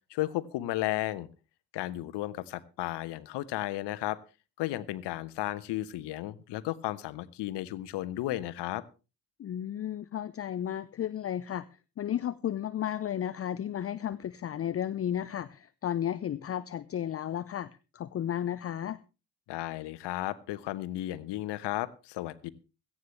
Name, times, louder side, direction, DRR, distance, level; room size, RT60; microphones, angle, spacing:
voice 1, 0.1-1.3 1.7-4.2 4.6-8.8 19.5-22.5, left 16 dB, 55° left, 16 dB, 1.1 m, -34 dB
voice 2, 9.4-11.6 12.0-19.0, left 10 dB, 30° left, 16 dB, 0.6 m, -33 dB
17.0 x 14.5 x 3.2 m, 0.31 s
figure-of-eight pair, 45°, 49 cm